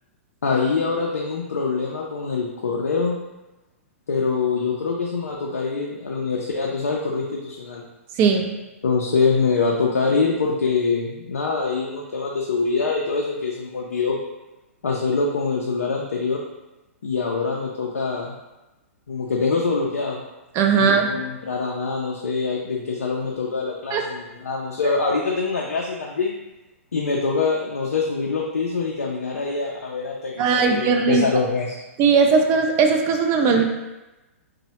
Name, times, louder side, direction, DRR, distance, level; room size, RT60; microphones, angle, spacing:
voice 1, 0.4-3.2 4.1-7.8 8.8-14.2 14.8-16.4 17.0-18.3 19.1-20.2 20.7-26.3 26.9-31.8 33.5-33.6, left 4 dB, 85° left, -1 dB, 0.4 m, -24 dB
voice 2, 8.2-8.6 20.5-21.1 23.9-24.0 30.4-31.2 32.0-33.6, right 5 dB, 30° right, 4 dB, 0.3 m, -18 dB
3.0 x 2.0 x 2.8 m, 1.0 s
hypercardioid pair, 120°, 8 cm